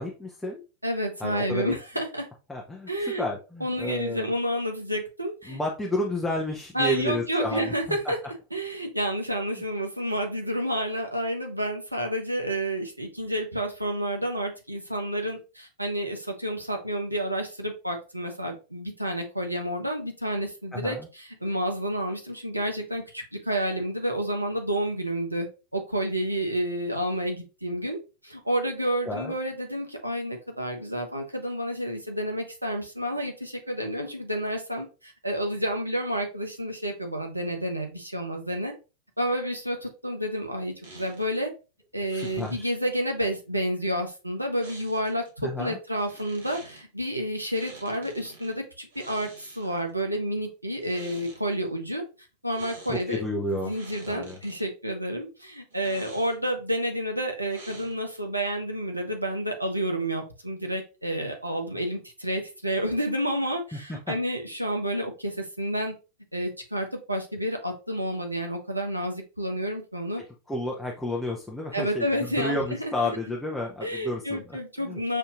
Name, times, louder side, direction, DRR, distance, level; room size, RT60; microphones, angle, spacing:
voice 1, 0.0-0.6 1.2-1.7 2.5-4.3 5.5-8.1 20.7-21.1 29.1-29.3 42.3-42.7 45.4-45.8 52.9-53.7 54.1-54.4 63.7-64.1 70.5-75.0, left 1 dB, 5° left, -1 dB, 0.7 m, -31 dB
voice 2, 0.8-2.3 2.9-3.3 3.6-5.6 6.7-8.2 8.5-25.5 25.7-28.0 28.2-38.7 39.2-41.5 41.9-52.0 52.4-53.2 53.5-65.9 66.3-70.2 71.7-72.9 73.8-75.2, equal, 85° right, 3 dB, 0.7 m, -30 dB
sound 1, 40.8-41.3 42.1-42.6 44.6-45.3 46.0-46.8 47.5-48.5 48.9-49.9 50.7-51.4 52.5-53.1 53.5-54.6 55.7-56.6 57.5-58.2, right 2 dB, 65° right, 1.2 m, -47 dB
5.6 x 2.7 x 2.4 m, 0.31 s
figure-of-eight pair, 90°, 0 cm